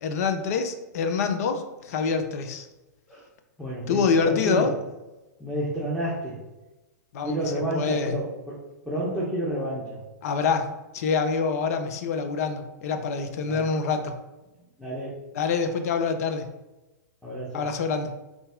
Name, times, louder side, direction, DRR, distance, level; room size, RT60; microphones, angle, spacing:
voice 1, 0.0-2.7 3.9-4.7 7.1-7.4 7.7-8.2 10.2-10.7 10.9-14.2 15.3-16.5 17.5-18.1, left 5 dB, 60° left, 7 dB, 0.5 m, -26 dB
voice 2, 3.6-4.7 5.4-6.4 7.2-8.6 8.8-10.0 13.4-13.7 14.8-15.2 17.2-17.7, right 1 dB, ahead, -8 dB, 0.9 m, -30 dB
3.9 x 2.5 x 3.6 m, 1.1 s
hypercardioid pair, 110°, 9 cm